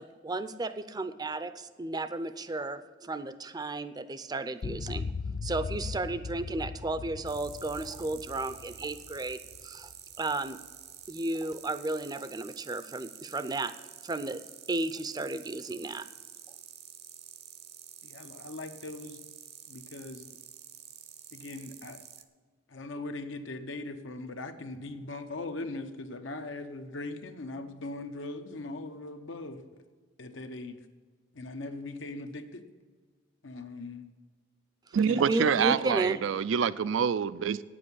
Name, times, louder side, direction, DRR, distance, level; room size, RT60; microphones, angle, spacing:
voice 1, 0.0-5.1 5.4-9.9 10.2-10.6 11.1-13.7 14.0-14.4 14.7-16.1 35.1-36.2, right 2 dB, 20° right, 0.5 m, -33 dB
sound 1, 4.6-10.0, left 4 dB, 45° left, 0.3 m, -39 dB
sound 2, 7.2-22.2, right 10 dB, 60° right, 0.8 m, -49 dB
voice 2, 18.0-19.2 19.7-20.3 21.3-22.0 22.7-29.7 30.2-30.8 31.3-32.6 33.4-34.1 35.1-35.5 36.0-36.1, left 2 dB, 80° left, 0.9 m, -40 dB
voice 3, 34.9-37.6, right 7 dB, 85° right, 0.4 m, -26 dB
9.1 x 7.7 x 8.0 m
head